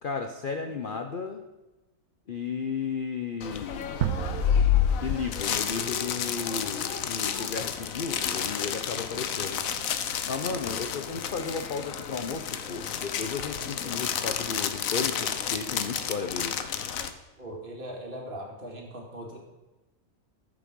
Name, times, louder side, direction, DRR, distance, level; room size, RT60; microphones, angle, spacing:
voice 1, 0.0-1.4 2.3-4.0 5.0-9.6 10.2-16.6, left 5 dB, 45° left, 6 dB, 0.7 m, -34 dB
sound 1, 3.4-17.1, left 8 dB, 65° left, 1.2 m, -30 dB
sound 2, 4.0-6.9, right 11 dB, 70° right, 0.9 m, -34 dB
voice 2, 17.4-19.4, right 1 dB, 35° right, -1 dB, 2.6 m, -39 dB
13.5 x 7.4 x 5.3 m, 1.1 s
omnidirectional pair, 1.6 m